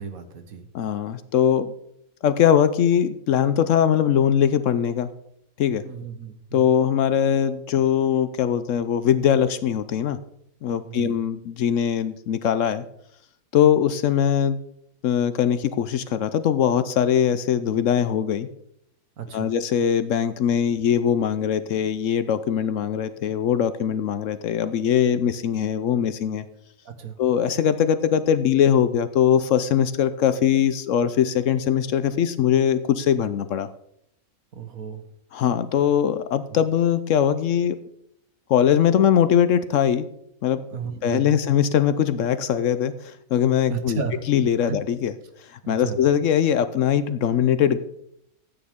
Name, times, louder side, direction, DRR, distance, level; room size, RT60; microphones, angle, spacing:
voice 1, 0.0-0.7 5.8-6.7 10.8-11.1 19.2-19.5 26.8-27.2 34.5-35.0 36.5-36.6 40.7-41.4 43.7-44.2 44.6-44.8 45.6-46.0, right 6 dB, 70° right, 8 dB, 1.6 m, -33 dB
voice 2, 0.7-1.7 2.2-5.1 5.6-5.8 6.5-10.2 10.6-12.8 13.5-14.6 15.0-18.5 19.3-26.4 27.2-33.7 35.3-37.8 38.5-40.1 40.4-40.6 41.0-44.0 44.3-45.1 45.5-47.8, left 9 dB, 65° left, 13 dB, 0.9 m, -21 dB
13.5 x 8.9 x 3.6 m, 0.74 s
omnidirectional pair, 1.6 m